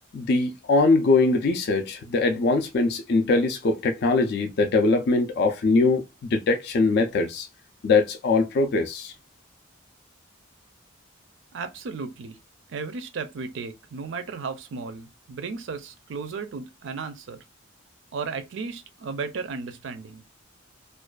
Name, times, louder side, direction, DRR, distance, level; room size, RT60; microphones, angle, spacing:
voice 1, 0.1-6.0 6.3-7.5 7.8-9.1, left 3 dB, 55° left, 0.3 m, -22 dB
voice 2, 11.5-12.4 12.7-17.4 18.1-20.2, right 4 dB, 65° right, 0.4 m, -34 dB
2.4 x 2.3 x 2.2 m
head